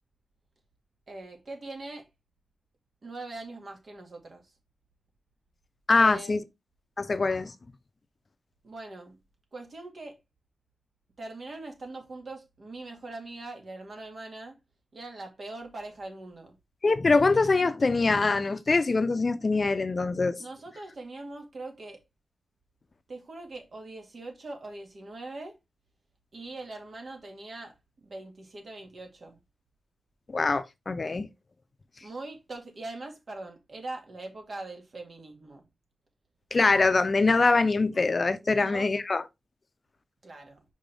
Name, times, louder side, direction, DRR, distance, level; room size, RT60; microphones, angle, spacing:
voice 1, 1.1-2.1 3.0-4.5 5.9-6.4 8.6-9.2 9.5-10.2 11.2-14.6 14.9-16.6 20.4-22.0 23.1-25.6 26.3-27.7 28.0-29.4 32.0-35.7 38.4-38.9 40.2-40.6, right 2 dB, 60° right, 2.1 m, -42 dB
voice 2, 5.9-6.4 7.0-7.5 16.8-20.4 30.3-31.3 36.5-39.2, left 3 dB, 45° left, 0.6 m, -23 dB
5.4 x 5.3 x 3.4 m
cardioid pair, 70°, 0 cm